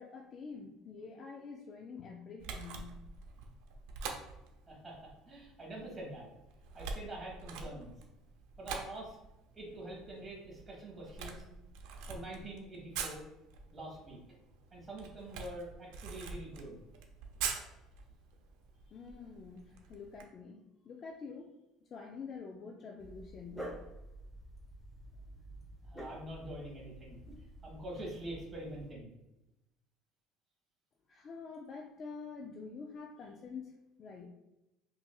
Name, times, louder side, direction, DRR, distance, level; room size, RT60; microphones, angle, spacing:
voice 1, 0.0-3.0 18.9-21.6 21.9-23.8 31.1-33.7 34.0-34.3, left 5 dB, 35° left, 2 dB, 0.4 m, -47 dB
Camera, 2.4-20.2, right 5 dB, 80° right, 0.6 m, -46 dB
voice 2, 4.7-6.3 6.7-7.9 8.6-9.2 9.5-11.4 12.1-13.2 13.7-14.2 14.7-16.8 25.8-27.2 27.6-29.1, right 1 dB, 20° right, -3 dB, 1.4 m, -45 dB
Dog, 23.0-28.9, right 1 dB, ahead, 0.9 m, -49 dB
5.6 x 2.6 x 2.3 m, 0.93 s
cardioid pair, 145°, 0 cm